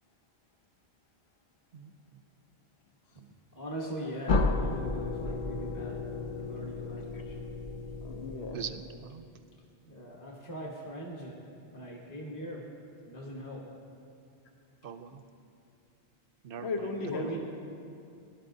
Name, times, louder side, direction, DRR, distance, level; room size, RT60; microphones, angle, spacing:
voice 1, 1.7-2.2 3.2-3.3 8.5-9.4 14.8-15.2 16.4-17.3, right 7 dB, 65° right, 10 dB, 0.7 m, -43 dB
voice 2, 3.5-6.0 6.4-7.4 9.9-11.4 11.7-12.6 13.1-13.6 17.1-17.4, right 1 dB, 20° left, -3 dB, 1.1 m, -41 dB
sound 1, 4.3-9.0, left 3 dB, 55° left, 0.7 m, -33 dB
voice 3, 8.0-8.6 16.6-17.4, left 3 dB, 90° left, 3 dB, 1.2 m, -35 dB
19.0 x 11.5 x 2.7 m, 2.5 s
omnidirectional pair, 1.1 m